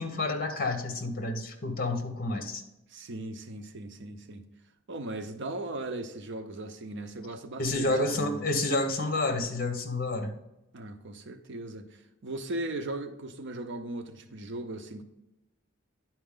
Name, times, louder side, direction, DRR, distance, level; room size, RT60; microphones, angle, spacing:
voice 1, 0.0-2.6 7.6-10.3, left 2 dB, 45° left, 6 dB, 1.1 m, -29 dB
voice 2, 2.9-4.4 4.9-8.5 10.7-15.0, right 2 dB, 65° right, 8 dB, 0.7 m, -38 dB
10.5 x 4.5 x 3.7 m, 0.92 s
head